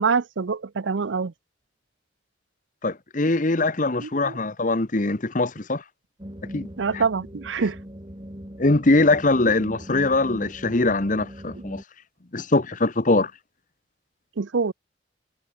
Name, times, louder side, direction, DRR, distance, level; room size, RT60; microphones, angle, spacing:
voice 1, 0.0-1.3 4.0-4.3 6.8-7.8 14.4-14.7, right 5 dB, 90° right, 0.6 m, -25 dB
voice 2, 2.8-5.8 6.5-6.7 6.9-7.0 8.6-11.8 12.3-13.3, left 2 dB, 45° left, 1.1 m, -22 dB
sound 1, 6.2-11.8, equal, 25° right, 3.2 m, -40 dB
head